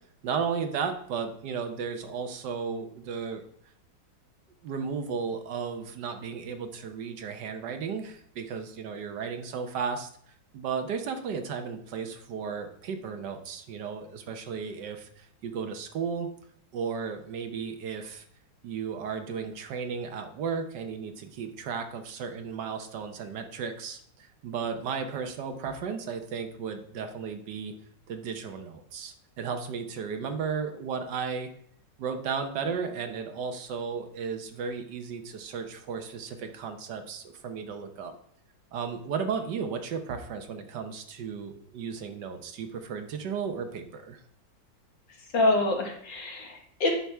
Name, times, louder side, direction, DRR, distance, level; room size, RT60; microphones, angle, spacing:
voice 1, 0.2-3.4 4.6-10.1 10.5-16.3 16.7-18.2 18.6-27.7 28.1-31.5 32.0-38.1 38.7-44.2, right 6 dB, 75° right, 7 dB, 1.5 m, -34 dB
voice 2, 45.1-46.9, left 2 dB, 80° left, 1 dB, 2.2 m, -26 dB
9.8 x 6.1 x 3.4 m, 0.62 s
omnidirectional pair, 1.9 m